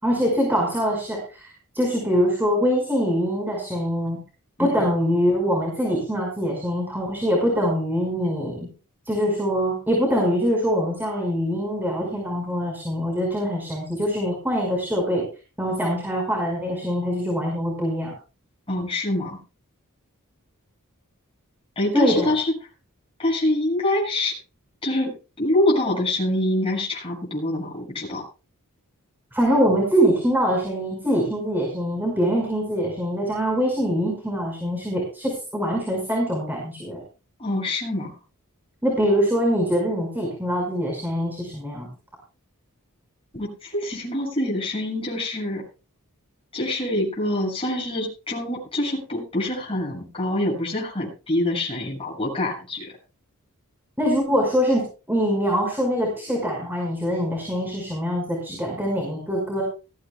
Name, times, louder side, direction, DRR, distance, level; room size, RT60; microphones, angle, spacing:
voice 1, 0.0-1.5 1.7-4.2 4.6-8.7 9.1-15.3 15.6-18.1 21.9-22.3 29.3-37.0 38.8-41.9 54.0-59.6, equal, 10° right, -1 dB, 5.5 m, -23 dB
voice 2, 18.7-19.4 21.8-22.5 23.2-24.4 24.8-25.1 25.4-28.2 37.4-38.1 43.3-45.6 46.5-52.9, left 1 dB, 25° left, -2 dB, 7.4 m, -25 dB
19.5 x 15.5 x 2.4 m, 0.33 s
head